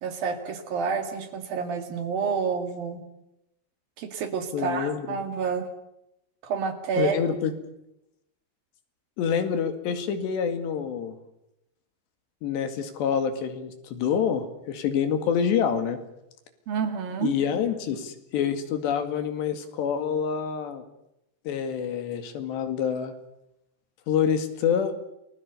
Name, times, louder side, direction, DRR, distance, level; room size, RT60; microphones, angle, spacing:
voice 1, 0.0-3.0 4.0-5.7 6.4-7.2 16.7-17.4, right 6 dB, 60° right, 7 dB, 3.8 m, -29 dB
voice 2, 4.5-5.2 7.0-7.5 9.2-11.2 12.4-16.0 17.2-20.8 21.5-23.1 24.1-24.9, left 7 dB, 85° left, 9 dB, 4.3 m, -27 dB
29.0 x 20.5 x 6.8 m, 0.85 s
omnidirectional pair, 4.9 m